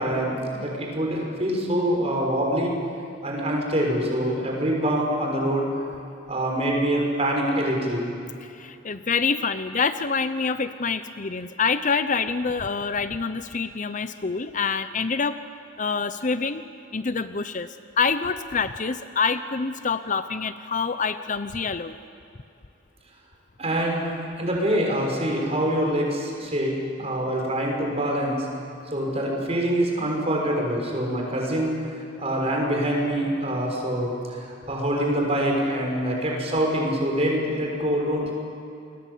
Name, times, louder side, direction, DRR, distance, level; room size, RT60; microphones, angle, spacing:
voice 1, 0.0-2.7 3.2-5.7 6.3-8.0 23.6-24.1 24.4-26.7 27.0-28.5 28.9-31.7 32.2-34.1 34.7-38.3, right 1 dB, 35° right, 0 dB, 6.2 m, -25 dB
voice 2, 8.5-15.4 15.8-16.6 16.9-22.0, left 5 dB, 40° left, 11 dB, 0.8 m, -26 dB
29.0 x 22.0 x 8.4 m, 2.6 s
head